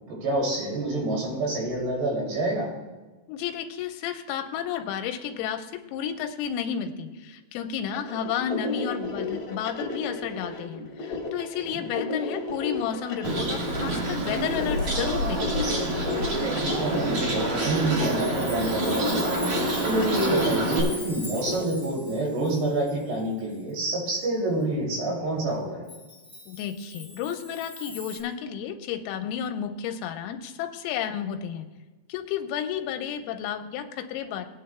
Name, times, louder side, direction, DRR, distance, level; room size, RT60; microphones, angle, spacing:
voice 1, 0.1-2.7 11.6-11.8 16.5-19.3 19.8-25.9, right 1 dB, 60° right, -2 dB, 4.5 m, -27 dB
voice 2, 3.3-15.6 26.5-31.7 32.1-34.5, left 8 dB, 90° left, 6 dB, 3.3 m, -32 dB
sound 1, 7.9-21.6, left 3 dB, 50° left, 2.0 m, -33 dB
Bird, 13.2-20.8, right 2 dB, 75° right, 1.4 m, -27 dB
Chime, 17.6-23.7 24.1-24.2 25.9-28.2, left 1 dB, ahead, 0.5 m, -41 dB
19.0 x 9.5 x 2.2 m, 1.2 s
omnidirectional pair, 5.9 m